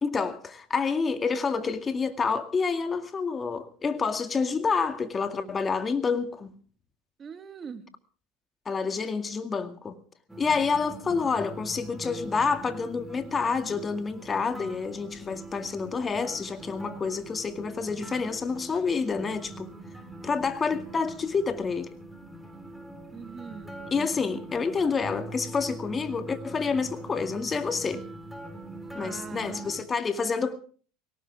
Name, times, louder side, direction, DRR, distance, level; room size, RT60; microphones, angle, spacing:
voice 1, 0.0-6.5 8.7-10.0 10.4-19.7 20.2-21.9 23.9-28.1 29.0-30.6, left 5 dB, 25° left, 2.1 m, -28 dB
voice 2, 7.2-7.8 23.1-23.7 29.0-29.7, right 6 dB, 30° right, 2.6 m, -41 dB
sound 1, 10.3-29.8, right 1 dB, ahead, 4.0 m, -43 dB
21.5 x 18.5 x 3.5 m
hypercardioid pair, 90°, 0 cm